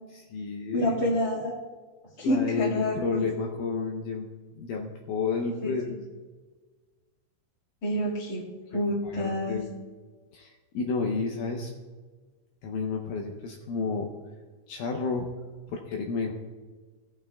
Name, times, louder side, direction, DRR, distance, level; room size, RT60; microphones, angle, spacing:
voice 1, 0.1-0.9 2.2-4.3 4.6-6.0 8.7-9.7 10.3-11.7 12.6-14.1 14.7-15.3 15.7-16.3, left 4 dB, 80° left, 1 dB, 1.9 m, -31 dB
voice 2, 0.7-1.5 2.2-3.3 5.4-5.7 7.8-8.4 8.7-9.6, equal, 35° left, -7 dB, 1.6 m, -28 dB
16.5 x 8.9 x 2.3 m, 1.4 s
omnidirectional pair, 4.6 m